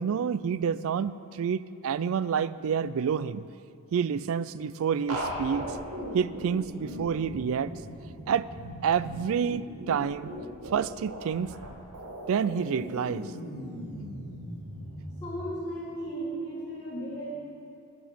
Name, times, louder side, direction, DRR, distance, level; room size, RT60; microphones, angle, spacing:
voice 1, 0.0-3.4 3.9-5.7 6.1-7.7 8.3-8.5 8.8-10.4 10.7-11.6 12.3-13.3, right 7 dB, 65° right, 16 dB, 0.3 m, -28 dB
sound 1, 5.1-15.3, equal, 85° right, 1.7 m, -38 dB
voice 2, 15.2-17.3, right 1 dB, 20° left, -8 dB, 1.9 m, -35 dB
12.0 x 6.0 x 8.5 m, 2.6 s
head